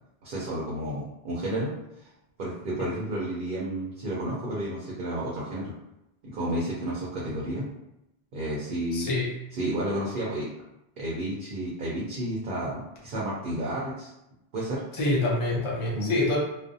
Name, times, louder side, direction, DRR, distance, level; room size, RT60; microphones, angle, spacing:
voice 1, 0.2-1.7 2.0-2.1 2.4-5.7 6.2-7.7 8.3-9.1 9.5-10.5 11.0-14.1 14.5-14.8 15.9-16.1, right 1 dB, 60° right, -5 dB, 0.7 m, -31 dB
voice 2, 8.9-9.3 14.9-16.4, left 2 dB, 40° left, -5 dB, 0.5 m, -26 dB
2.4 x 2.0 x 2.6 m, 0.88 s
omnidirectional pair, 1.1 m